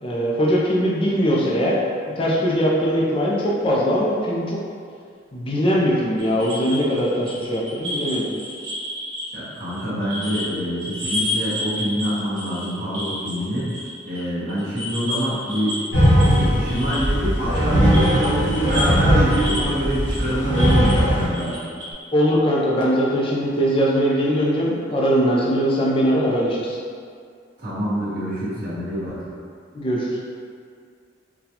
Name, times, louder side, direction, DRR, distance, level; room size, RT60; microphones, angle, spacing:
voice 1, 0.0-1.8 2.2-4.6 5.3-8.3 22.1-26.8 29.7-30.2, equal, 25° left, -5 dB, 0.4 m, -21 dB
sound 1, 6.2-10.5 10.8-14.2 14.5-21.9, left 1 dB, 70° right, 1.0 m, -31 dB
voice 2, 9.3-13.7 14.1-15.8 16.2-21.6 27.6-29.2, equal, 45° right, -10 dB, 1.0 m, -25 dB
sound 2, 15.9-21.3, equal, 65° left, 1.0 m, -19 dB
3.9 x 2.2 x 2.8 m, 2.2 s
head